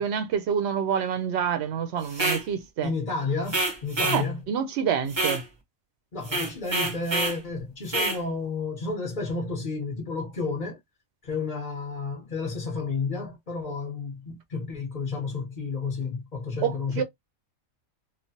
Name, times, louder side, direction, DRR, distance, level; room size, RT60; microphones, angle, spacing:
voice 1, 0.0-2.9 4.1-5.4 16.6-17.0, right 8 dB, 65° right, 0.7 m, -27 dB
sound 1, 2.1-2.4 3.5-4.2 5.1-5.4 6.2-7.4 7.9-8.2, right 2 dB, 30° right, 0.5 m, -27 dB
voice 2, 2.8-4.4 6.1-10.8 11.2-17.0, left 4 dB, 40° left, 1.0 m, -31 dB
3.1 x 2.1 x 2.6 m
omnidirectional pair, 1.4 m